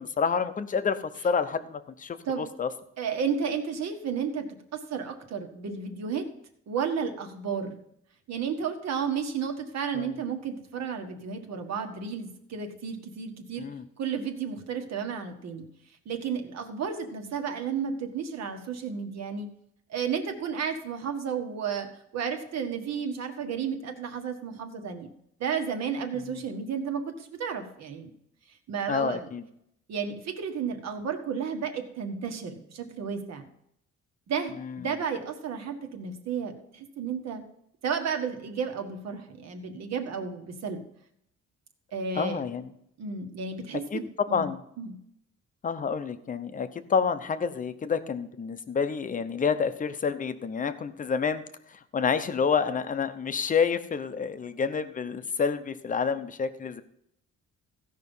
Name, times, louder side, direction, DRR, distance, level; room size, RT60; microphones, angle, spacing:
voice 1, 0.0-2.7 9.9-10.2 13.6-13.8 26.1-26.4 28.9-29.4 34.6-34.9 42.2-42.7 43.9-44.0 44.3-44.6 45.6-51.4 51.7-56.8, left 6 dB, 25° left, 10 dB, 0.8 m, -29 dB
voice 2, 3.0-4.5 4.7-6.2 6.7-7.8 8.3-13.6 14.0-15.7 16.0-19.5 19.9-21.9 22.1-25.1 25.4-28.1 28.7-29.3 29.9-33.5 34.3-37.4 37.8-40.8 41.9-42.4 43.0-44.5 44.8-45.0, right 6 dB, 60° right, 5 dB, 1.7 m, -32 dB
15.5 x 5.7 x 5.5 m, 0.74 s
cardioid pair, 145°, 29 cm